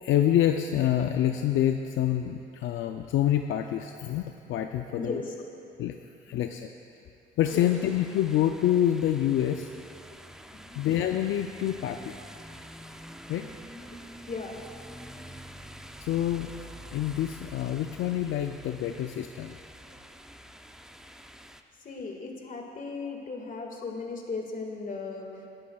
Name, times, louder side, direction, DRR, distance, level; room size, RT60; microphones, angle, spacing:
voice 1, 0.0-5.2 5.8-6.0 6.3-6.7 7.4-9.7 10.8-12.1 13.3-13.5 16.0-16.5 16.9-19.6, left 11 dB, 80° left, 5 dB, 0.5 m, -27 dB
voice 2, 5.0-5.3 6.3-6.4 7.5-7.7 10.5-10.8 13.8-14.0 14.3-14.6 21.8-25.3, left 4 dB, 45° left, 1 dB, 1.9 m, -37 dB
sound 1, 7.5-21.6, equal, 5° right, 0.5 m, -47 dB
20.5 x 11.5 x 2.3 m, 2.9 s
cardioid pair, 90°, 20 cm